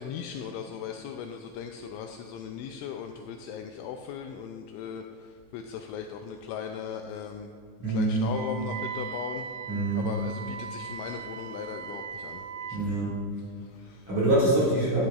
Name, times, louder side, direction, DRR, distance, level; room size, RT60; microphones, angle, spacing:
voice 1, 0.0-7.5 7.9-9.4 9.9-13.0 13.4-14.1, left 7 dB, 85° left, 4 dB, 2.7 m, -38 dB
voice 2, 7.8-8.2 9.7-10.1 12.7-13.2 14.1-15.1, right 2 dB, 45° right, -8 dB, 2.2 m, -24 dB
Wind instrument woodwind instrument, 8.3-12.9, right 7 dB, 80° right, 3.2 m, -39 dB
13.0 x 11.0 x 2.4 m, 2.3 s
omnidirectional pair, 5.7 m